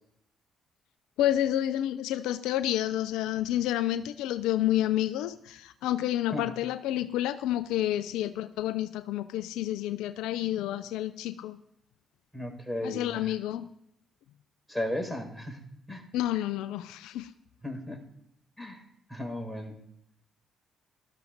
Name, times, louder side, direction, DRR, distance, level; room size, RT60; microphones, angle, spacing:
voice 1, 1.2-11.6 12.8-13.7 16.1-17.3, left 13 dB, 75° left, 14 dB, 0.4 m, -29 dB
voice 2, 12.3-13.3 14.7-16.1 17.6-18.0 18.6-18.8 19.1-19.8, left 1 dB, ahead, 3 dB, 5.1 m, -35 dB
20.0 x 13.0 x 2.6 m, 0.75 s
hypercardioid pair, 45°, 0 cm